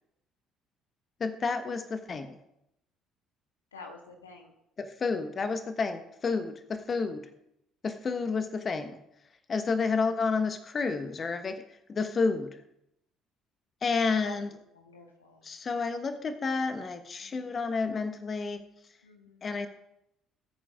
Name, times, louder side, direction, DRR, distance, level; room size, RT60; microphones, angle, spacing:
voice 1, 1.2-2.4 4.8-7.2 7.8-9.0 9.5-11.6 11.9-12.6 13.8-14.5 15.4-18.6 19.4-19.7, left 4 dB, 40° left, 8 dB, 1.4 m, -30 dB
voice 2, 3.7-4.5 14.2-14.4 14.7-15.5 17.2-17.5 19.0-19.4, left 3 dB, 85° left, 2 dB, 1.7 m, -48 dB
20.0 x 8.7 x 3.7 m, 0.80 s
figure-of-eight pair, 50°, 0 cm